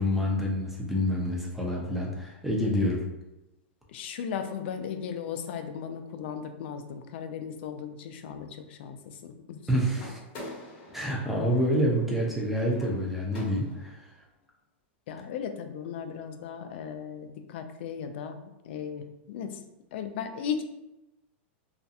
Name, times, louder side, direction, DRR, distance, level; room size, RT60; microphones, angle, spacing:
voice 1, 0.0-3.0 9.7-10.2 10.9-14.0, equal, 5° right, -3 dB, 0.5 m, -27 dB
voice 2, 3.9-9.6 15.1-19.6 19.9-20.6, left 7 dB, 60° left, 7 dB, 0.3 m, -36 dB
sound 1, 9.9-14.0, left 2 dB, 40° left, 0.8 m, -46 dB
2.4 x 2.2 x 2.7 m, 0.95 s
supercardioid pair, 140°, 7 cm